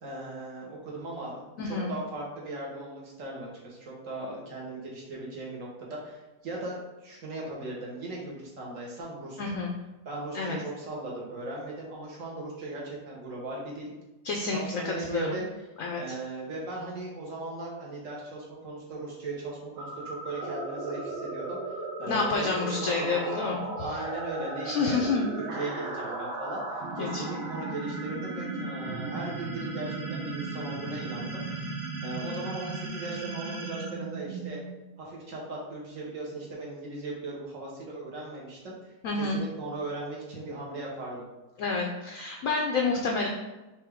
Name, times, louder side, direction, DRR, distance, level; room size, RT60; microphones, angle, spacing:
voice 1, 0.0-9.6 10.0-13.9 14.5-15.5 16.0-21.7 22.0-34.6 35.0-41.3, right 2 dB, 55° right, -3 dB, 1.5 m, -38 dB
voice 2, 1.6-1.9 9.4-9.7 10.3-10.6 14.2-15.4 15.8-16.0 22.1-23.6 24.6-25.3 27.0-27.2 39.0-39.4 41.6-43.3, left 3 dB, 65° left, 0 dB, 0.8 m, -28 dB
sound 1, 19.8-34.9, right 3 dB, 85° right, 1.4 m, -36 dB
4.6 x 3.3 x 3.5 m, 1.1 s
omnidirectional pair, 1.8 m